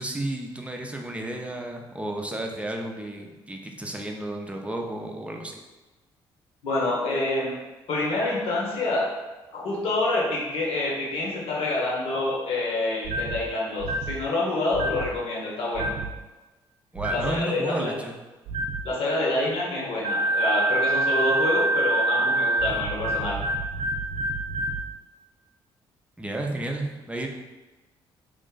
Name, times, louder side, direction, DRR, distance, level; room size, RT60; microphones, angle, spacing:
voice 1, 0.0-5.6 16.9-18.2 26.2-27.3, right 1 dB, 10° right, 2 dB, 0.6 m, -32 dB
voice 2, 6.6-7.5 7.9-9.1 9.5-15.9 17.1-17.9 18.8-23.4, left 2 dB, 65° left, -5 dB, 1.2 m, -27 dB
sound 1, 13.0-13.4 13.8-14.2 14.7-15.1 15.7-16.1 17.0-17.3 18.5-18.8 20.0-24.8, right 2 dB, 70° right, 0.6 m, -26 dB
3.1 x 2.5 x 3.8 m, 1.1 s
supercardioid pair, 65°, 10 cm